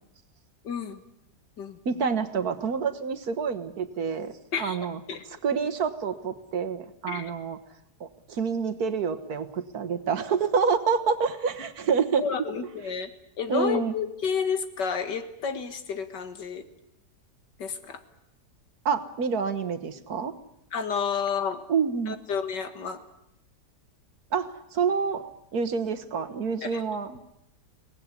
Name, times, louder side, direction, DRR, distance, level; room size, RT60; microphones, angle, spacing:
voice 1, 0.6-1.0 1.6-1.8 4.5-4.8 5.1-5.2 7.1-7.3 12.2-13.1 13.4-16.7 17.6-18.0 20.7-21.6 22.1-23.0 26.6-26.8, left 6 dB, 85° left, 9 dB, 2.3 m, -30 dB
voice 2, 1.9-4.3 4.6-5.0 5.4-7.6 8.0-12.2 13.5-13.9 18.9-20.3 21.7-22.2 24.3-25.2 25.5-27.2, right 5 dB, 65° right, 11 dB, 1.8 m, -27 dB
23.5 x 18.5 x 9.7 m, 0.82 s
omnidirectional pair, 1.8 m